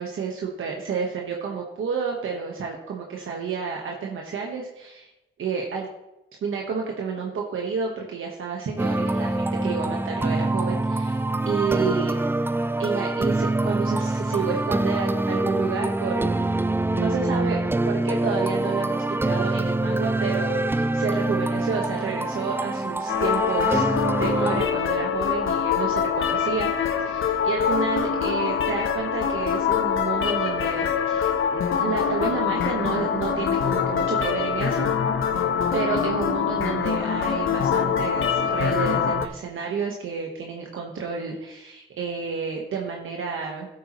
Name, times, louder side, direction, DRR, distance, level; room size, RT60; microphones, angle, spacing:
voice 1, 0.0-5.1 5.4-5.9 6.4-12.1 12.8-16.5 16.9-17.6 17.8-26.7 27.0-34.9 35.7-43.7, right 5 dB, 80° right, 0 dB, 1.3 m, -30 dB
sound 1, 8.8-24.6, right 2 dB, 10° right, 0.4 m, -25 dB
sound 2, 23.1-39.3, left 7 dB, 80° left, 0.9 m, -24 dB
14.0 x 8.2 x 3.1 m, 0.94 s
cardioid pair, 85°, 21 cm